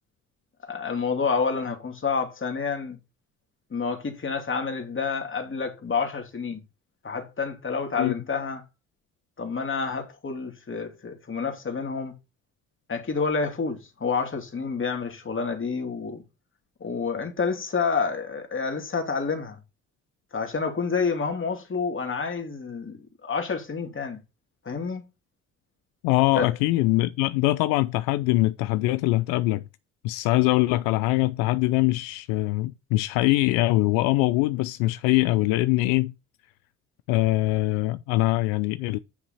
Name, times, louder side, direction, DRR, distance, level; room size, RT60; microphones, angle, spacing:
voice 1, 0.6-3.0 3.7-6.6 7.0-8.6 9.4-12.1 12.9-16.2 16.8-19.6 20.3-24.2 24.6-25.0 26.3-26.5, left 5 dB, 35° left, 3.0 m, -29 dB
voice 2, 26.0-29.6 30.0-36.1 37.1-39.0, left 18 dB, 75° left, 0.6 m, -23 dB
10.0 x 5.5 x 4.2 m
hypercardioid pair, 55°, 35 cm